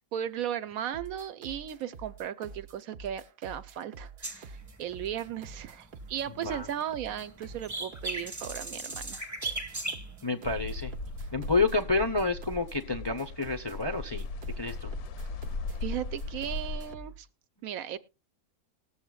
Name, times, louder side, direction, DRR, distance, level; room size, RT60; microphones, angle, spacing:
voice 1, 0.1-9.2 15.8-17.3 17.6-18.0, right 10 dB, 75° right, 1.1 m, -36 dB
sound 1, 0.9-17.2, right 4 dB, 50° right, 0.7 m, -47 dB
sound 2, 4.2-6.5 6.8-10.5 11.1-11.2, right 2 dB, 15° right, 1.1 m, -38 dB
voice 2, 10.2-10.9 11.3-14.3 14.6-14.9, left 3 dB, 30° left, 0.5 m, -29 dB
sound 3, 10.4-17.0, left 3 dB, 80° left, 1.2 m, -38 dB
20.0 x 7.2 x 2.3 m
omnidirectional pair, 1.5 m